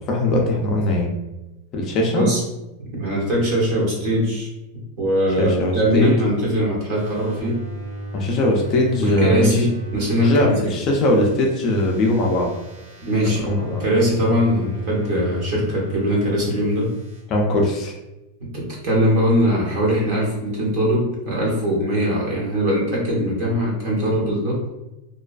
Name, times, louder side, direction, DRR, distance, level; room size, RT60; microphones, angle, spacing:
voice 1, 0.1-1.1 1.7-2.3 5.4-6.1 8.1-9.7 10.2-12.5 13.4-13.8 17.3-17.9, left 1 dB, 30° left, 0 dB, 0.4 m, -20 dB
voice 2, 2.8-4.5 5.0-7.6 9.0-10.7 13.0-16.9 18.4-24.6, equal, 40° right, -3 dB, 0.8 m, -21 dB
sound 1, 6.9-10.4 10.8-16.4 16.7-17.2, right 2 dB, 75° right, 1.0 m, -35 dB
2.3 x 2.2 x 2.3 m, 0.97 s
supercardioid pair, 165°, 0 cm